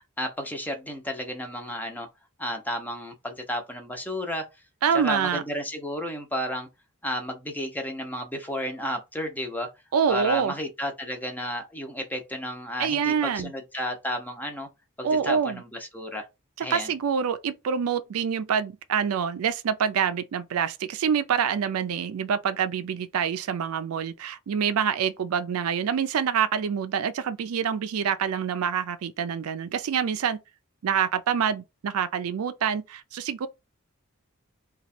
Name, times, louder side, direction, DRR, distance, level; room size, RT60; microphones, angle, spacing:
voice 1, 0.2-2.1 2.4-4.4 4.9-6.7 7.0-9.7 10.1-14.7 15.0-16.3 16.6-16.9, equal, 10° left, 0.7 m, -32 dB
voice 2, 4.8-5.4 9.9-10.5 12.8-13.5 15.0-15.6 16.6-30.4 30.8-33.5, right 7 dB, 80° right, 0.4 m, -26 dB
3.0 x 2.3 x 4.2 m
head